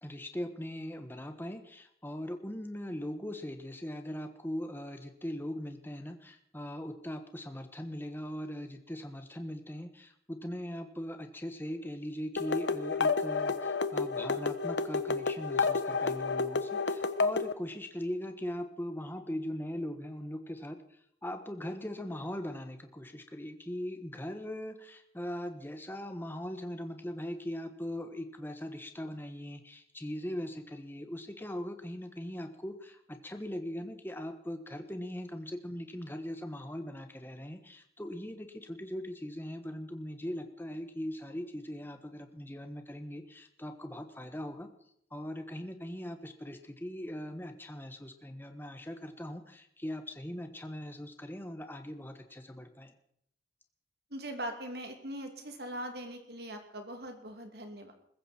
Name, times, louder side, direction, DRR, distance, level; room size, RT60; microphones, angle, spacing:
voice 1, 0.0-20.8 21.2-44.7 45.1-52.9, equal, 10° left, 6 dB, 1.3 m, -40 dB
sound 1, 12.4-17.5, left 4 dB, 80° left, 1.0 m, -30 dB
voice 2, 54.1-57.9, right 1 dB, 60° right, 5 dB, 2.8 m, -41 dB
22.0 x 14.5 x 4.5 m, 0.71 s
head